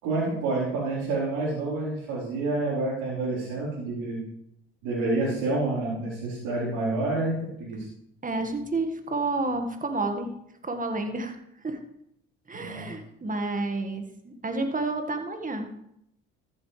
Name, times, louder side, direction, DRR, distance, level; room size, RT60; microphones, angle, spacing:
voice 1, 0.0-4.2 4.8-7.8 12.5-12.9, right 2 dB, 70° right, -9 dB, 4.4 m, -28 dB
voice 2, 8.2-10.3 10.6-11.4 11.6-11.8 12.5-15.7, right 2 dB, 25° right, 6 dB, 1.9 m, -30 dB
14.0 x 8.9 x 3.4 m, 0.77 s
hypercardioid pair, 60°, 33 cm